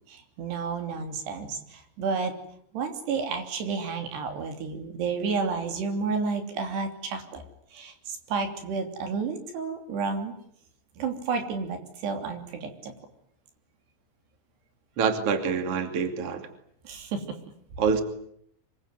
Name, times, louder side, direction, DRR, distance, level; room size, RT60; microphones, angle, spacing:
voice 1, 0.1-2.3 2.7-7.4 7.7-10.4 11.0-12.9 16.9-17.4, right 5 dB, 75° right, 6 dB, 5.2 m, -31 dB
voice 2, 15.0-16.5 17.8-18.0, right 6 dB, 40° right, 7 dB, 3.1 m, -26 dB
26.0 x 22.5 x 9.6 m, 0.69 s
omnidirectional pair, 4.8 m